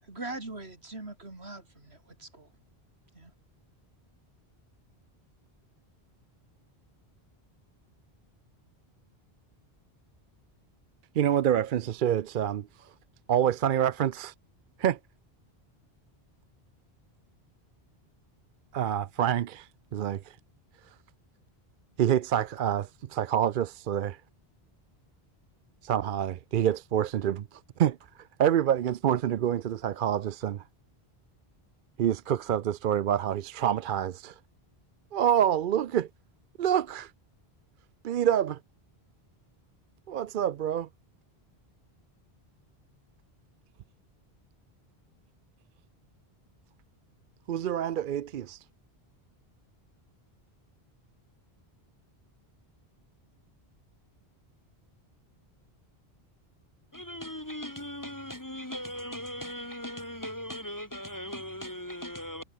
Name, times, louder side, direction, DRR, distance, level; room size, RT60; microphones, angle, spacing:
voice 1, 0.0-2.5 3.1-3.3, right 2 dB, 85° right, 4.4 m, -41 dB
voice 2, 11.1-12.9 13.3-14.3 14.8-15.0 18.7-20.4 22.0-24.2 25.8-28.0 28.4-30.6 32.0-34.3 35.1-36.1 36.6-37.1 38.0-38.6 40.1-40.9 47.5-48.6, right 10 dB, 60° right, 0.7 m, -27 dB
voice 3, 56.9-62.4, left 1 dB, 20° left, 1.3 m, -38 dB
omnidirectional pair, 1.1 m